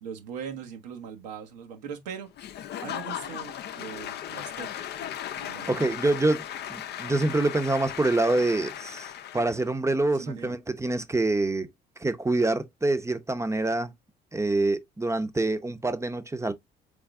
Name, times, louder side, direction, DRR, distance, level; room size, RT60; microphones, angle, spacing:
voice 1, 0.0-4.7 4.9-6.0 10.1-10.5, right 7 dB, 85° right, 1.0 m, -41 dB
Applause / Crowd, 2.4-9.7, left 10 dB, 55° left, 0.6 m, -37 dB
voice 2, 5.7-6.4 6.7-9.1 9.3-11.7 12.0-13.9 14.3-16.5, right 2 dB, 15° right, 0.7 m, -26 dB
3.9 x 3.7 x 3.5 m
hypercardioid pair, 60°, 20 cm